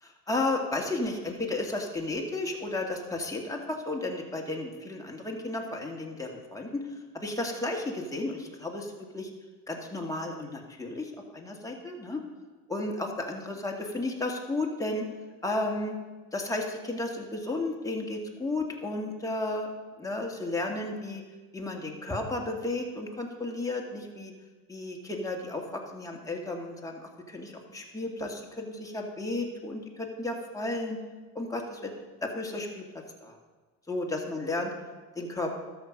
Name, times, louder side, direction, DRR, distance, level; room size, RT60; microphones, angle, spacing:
voice 1, 0.0-6.8 7.1-9.3 9.7-12.2 12.7-15.1 15.4-16.0 16.3-19.7 20.0-21.2 21.5-24.3 24.7-27.0 27.3-31.0 31.4-31.9 32.2-32.8 33.2-33.4 33.9-34.7 35.2-35.5, left 2 dB, 10° left, 0 dB, 2.1 m, -33 dB
13.0 x 6.2 x 5.3 m, 1.3 s
hypercardioid pair, 70°, 37 cm